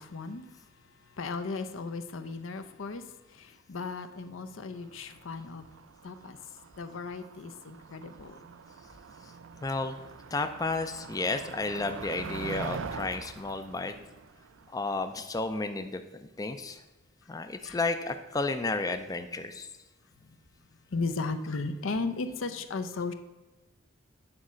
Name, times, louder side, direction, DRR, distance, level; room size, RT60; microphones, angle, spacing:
voice 1, 0.0-5.7 6.0-6.4 6.8-8.4 17.6-17.8 20.2-20.4 20.9-23.1, left 3 dB, 75° left, 9 dB, 0.6 m, -36 dB
Motor vehicle (road), 4.8-15.2, right 5 dB, 70° right, 0.5 m, -43 dB
voice 2, 9.6-10.0 10.3-13.9 14.7-16.8 17.3-19.7, left 3 dB, 20° left, 8 dB, 0.4 m, -32 dB
8.8 x 4.1 x 6.2 m, 1.1 s
head